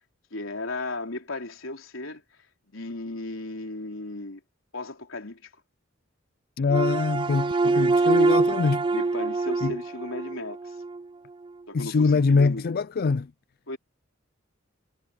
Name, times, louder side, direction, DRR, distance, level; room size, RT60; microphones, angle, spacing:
voice 1, 0.3-2.2 2.7-4.4 4.7-5.5 7.6-7.7 8.9-10.8 11.7-12.8 13.7-13.8, left 2 dB, 85° left, 3.7 m, -35 dB
voice 2, 6.6-8.8 9.6-9.7 11.7-13.3, left 4 dB, 50° left, 0.4 m, -23 dB
sound 1, 6.7-11.0, right 3 dB, 25° right, 0.3 m, -24 dB
head